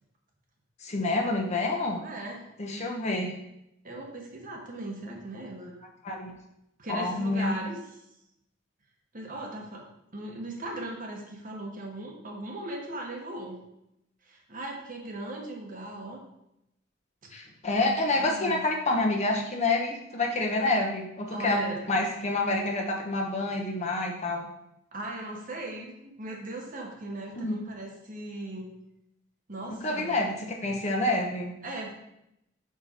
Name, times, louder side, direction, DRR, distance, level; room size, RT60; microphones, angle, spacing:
voice 1, 0.8-2.0 2.6-3.3 6.0-6.3 6.9-7.6 17.3-24.5 27.4-27.6 29.7-30.3 30.6-31.5, left 2 dB, 35° left, 0 dB, 1.0 m, -28 dB
voice 2, 2.0-2.4 3.8-5.8 6.8-7.8 9.1-9.9 10.1-13.6 14.3-16.2 18.1-18.6 21.3-21.9 24.9-28.7 29.5-30.2 31.6-31.9, right 1 dB, 45° right, 0 dB, 1.2 m, -38 dB
5.5 x 4.8 x 4.4 m, 0.82 s
head